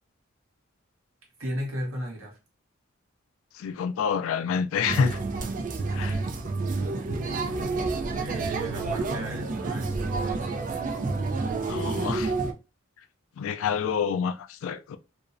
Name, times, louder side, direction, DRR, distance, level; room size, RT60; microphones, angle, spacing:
voice 1, 1.4-2.4 8.1-10.8, equal, 80° right, 0.9 m, -36 dB
voice 2, 3.6-5.2 5.9-6.2 11.7-12.3 13.4-14.3 14.6-15.0, left 6 dB, 75° left, 0.3 m, -27 dB
sound 1, 4.8-12.5, right 3 dB, 40° right, 0.3 m, -29 dB
2.4 x 2.0 x 2.5 m
head